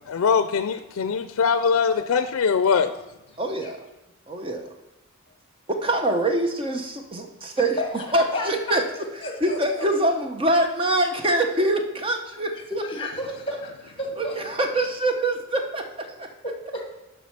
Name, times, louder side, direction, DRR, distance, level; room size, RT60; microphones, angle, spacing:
voice 1, 0.1-2.9, left 6 dB, 90° left, 11 dB, 0.4 m, -22 dB
voice 2, 3.4-3.8 4.3-4.6 5.7-7.8 8.1-8.8 9.4-12.5 14.2-16.3, right 1 dB, 25° right, 5 dB, 0.8 m, -24 dB
voice 3, 7.8-9.9 12.5-14.4 16.4-16.8, left 1 dB, 25° left, 2 dB, 1.6 m, -32 dB
7.4 x 5.7 x 5.8 m, 0.97 s
head